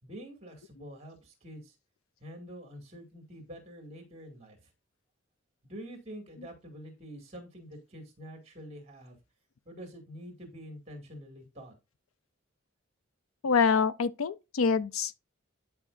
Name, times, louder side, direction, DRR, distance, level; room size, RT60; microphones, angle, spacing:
voice 1, 0.0-1.7 2.2-4.6 5.6-9.2 9.7-11.7, equal, 30° right, 2.4 m, -46 dB
voice 2, 13.4-15.1, left 5 dB, 85° left, 0.5 m, -26 dB
12.0 x 4.8 x 2.6 m
head